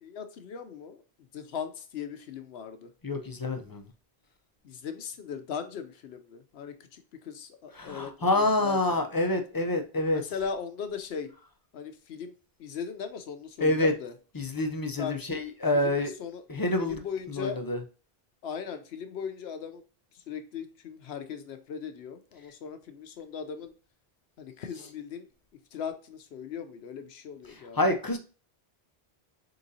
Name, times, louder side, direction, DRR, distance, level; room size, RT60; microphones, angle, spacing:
voice 1, 0.0-1.0 1.3-2.9 4.6-9.0 10.1-11.3 11.7-12.3 12.6-14.1 15.0-15.1 15.7-16.4 16.8-17.6 18.4-19.8 20.1-23.7 24.4-25.3 25.7-27.8, left 6 dB, 80° left, 0.9 m, -38 dB
voice 2, 3.0-3.9 7.7-10.2 13.6-13.9 14.3-16.1 16.5-17.0 17.3-17.8 27.7-28.2, left 2 dB, 30° left, 0.4 m, -27 dB
4.0 x 3.7 x 2.6 m
omnidirectional pair, 1.0 m